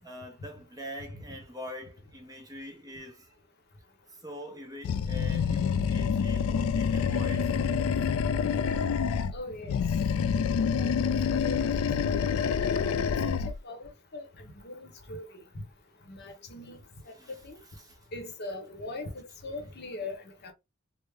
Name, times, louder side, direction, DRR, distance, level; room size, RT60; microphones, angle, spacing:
voice 1, 0.0-3.3 4.1-7.8 17.2-17.4 17.8-18.0, left 1 dB, 20° right, 0.8 m, -44 dB
Animal, 4.8-9.4 9.7-13.6, left 6 dB, 90° left, 0.3 m, -27 dB
voice 2, 9.3-9.8 10.3-10.4 10.8-11.1 11.4-11.7 12.0-12.4 13.2-15.2 16.1-16.8 17.4-17.6 18.1-20.5, left 2 dB, 50° left, 0.8 m, -40 dB
3.4 x 2.0 x 3.2 m
head